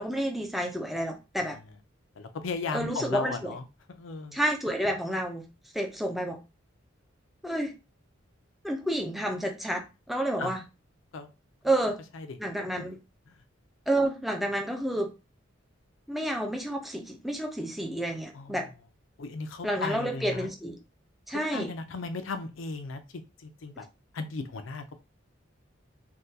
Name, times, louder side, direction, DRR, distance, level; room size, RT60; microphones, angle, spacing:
voice 1, 0.0-1.6 2.7-3.5 4.3-5.4 5.7-6.4 7.4-7.7 8.6-10.6 11.6-12.0 12.4-13.0 13.9-15.1 16.1-18.7 19.6-20.8 21.3-21.7, right 1 dB, ahead, 2 dB, 0.4 m, -30 dB
voice 2, 2.1-4.4 10.4-10.6 11.1-11.3 12.1-12.4 12.8-12.9 13.3-13.4 18.3-18.7 19.2-20.5 21.3-23.8 24.1-25.0, left 4 dB, 75° left, 8 dB, 0.5 m, -36 dB
3.5 x 2.3 x 2.7 m, 0.28 s
head